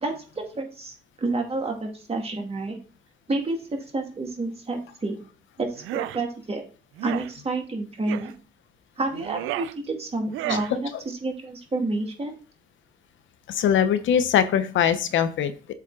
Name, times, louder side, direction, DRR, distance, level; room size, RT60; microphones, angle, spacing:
voice 1, 0.0-2.8 3.3-5.2 5.6-6.6 7.0-8.3 9.0-10.9 11.2-12.3, right 2 dB, 30° right, 2 dB, 2.3 m, -29 dB
sound 1, 5.8-6.2 7.0-7.3 8.1-8.3 9.1-9.7 10.3-10.7, right 15 dB, 90° right, 0.4 m, -32 dB
voice 2, 13.5-15.7, left 9 dB, 75° left, 11 dB, 0.9 m, -22 dB
7.5 x 3.5 x 4.8 m, 0.38 s
cardioid pair, 90°, 20 cm